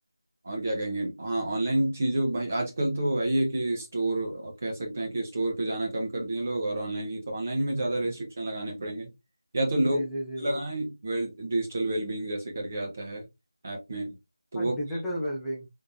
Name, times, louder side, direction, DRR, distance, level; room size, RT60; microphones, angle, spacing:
voice 1, 0.4-9.1 9.5-10.0 10.4-13.3 13.6-14.1 14.5-14.7, right 1 dB, 30° right, 1.0 m, -29 dB
voice 2, 9.7-10.6 14.5-15.7, equal, ahead, 0.5 m, -33 dB
3.7 x 3.3 x 2.7 m
figure-of-eight pair, 175°, 2 cm